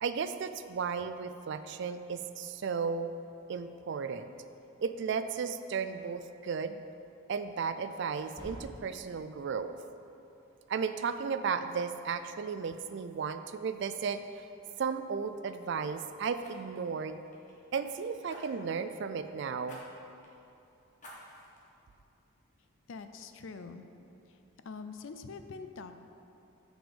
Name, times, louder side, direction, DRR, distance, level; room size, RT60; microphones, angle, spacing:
voice 1, 0.0-3.1 3.5-4.3 4.8-6.8 7.3-9.7 10.7-14.5 14.8-17.2 17.7-19.8, right 6 dB, 55° right, 10 dB, 0.3 m, -34 dB
sound 1, 5.9-6.1 8.1-9.1, equal, 15° left, 2.0 m, -48 dB
Fire, 14.3-14.5 16.4-17.9 18.3-18.8 19.6-19.8 20.2-20.3 21.0-21.6 22.1-22.2, equal, 35° left, 1.4 m, -52 dB
voice 2, 22.9-23.9 24.3-24.4 24.6-25.9, left 4 dB, 65° left, 8 dB, 0.4 m, -44 dB
7.0 x 6.0 x 5.3 m, 2.7 s
head